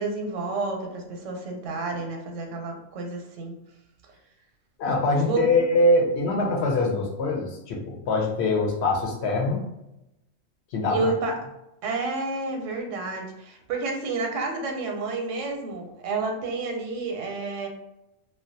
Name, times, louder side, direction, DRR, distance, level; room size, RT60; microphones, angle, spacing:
voice 1, 0.0-3.6 5.2-5.5 10.9-11.4 11.8-17.7, right 3 dB, 85° right, 3 dB, 0.9 m, -30 dB
voice 2, 4.8-9.6 10.7-11.1, left 2 dB, 65° left, 0 dB, 0.8 m, -23 dB
2.2 x 2.2 x 2.6 m, 0.87 s
omnidirectional pair, 1.3 m